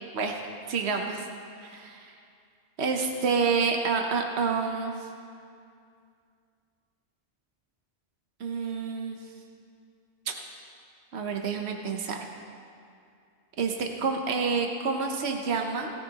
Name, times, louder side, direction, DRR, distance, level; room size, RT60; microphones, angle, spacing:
voice 1, 0.7-1.3 1.6-2.1 2.8-5.1 8.4-9.2 10.3-10.4 11.1-12.2 13.6-15.9, right 5 dB, 70° right, 3 dB, 1.2 m, -28 dB
18.0 x 13.5 x 2.9 m, 2.3 s
omnidirectional pair, 1.1 m